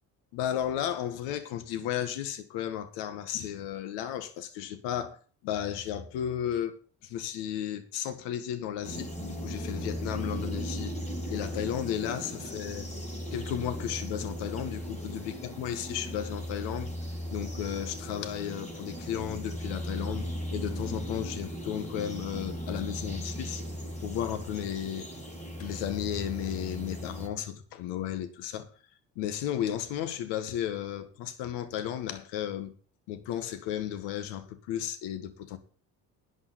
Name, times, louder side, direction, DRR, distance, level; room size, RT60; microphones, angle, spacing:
voice 1, 0.3-6.8 7.0-10.9 11.3-12.9 13.3-16.9 17.3-23.6 24.0-25.1 25.6-28.7 29.2-32.7 33.1-35.6, left 10 dB, 85° left, 1.8 m, -34 dB
sound 1, 8.8-27.3, equal, 15° left, 5.2 m, -37 dB
11.5 x 5.3 x 8.4 m
supercardioid pair, 65°, 41 cm